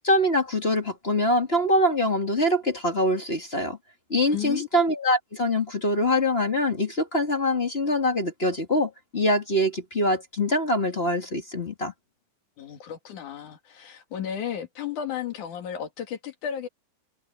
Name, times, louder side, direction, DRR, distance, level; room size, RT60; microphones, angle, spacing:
voice 1, 0.0-3.8 4.1-11.9, left 1 dB, 25° left, 1.9 m, -24 dB
voice 2, 4.3-4.7 12.6-16.7, left 9 dB, 90° left, 3.7 m, -33 dB
omnidirectional pair, 3.4 m